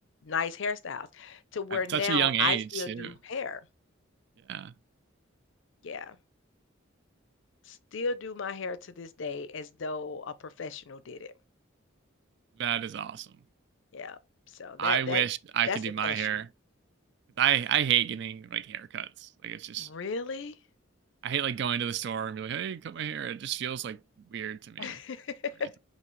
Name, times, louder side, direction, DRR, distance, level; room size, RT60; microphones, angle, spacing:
voice 1, 0.2-3.6 5.8-6.2 7.7-11.3 13.9-14.2 14.6-15.2 15.7-16.3 19.8-20.6 24.8-25.7, left 5 dB, 65° left, 0.5 m, -34 dB
voice 2, 1.7-3.1 4.5-4.7 12.6-13.3 14.8-16.5 17.4-19.9 21.2-24.0 24.3-24.9, right 9 dB, 55° right, 0.3 m, -30 dB
5.7 x 2.8 x 3.1 m
head